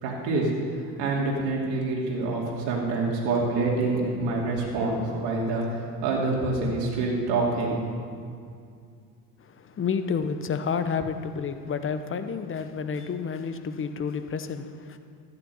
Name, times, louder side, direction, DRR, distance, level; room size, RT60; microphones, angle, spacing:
voice 1, 0.0-0.5 1.0-7.8, right 3 dB, 55° right, -3 dB, 2.7 m, -26 dB
voice 2, 9.4-15.0, left 6 dB, 25° left, 9 dB, 0.9 m, -30 dB
13.5 x 9.2 x 5.6 m, 2.3 s
hypercardioid pair, 75°, 50 cm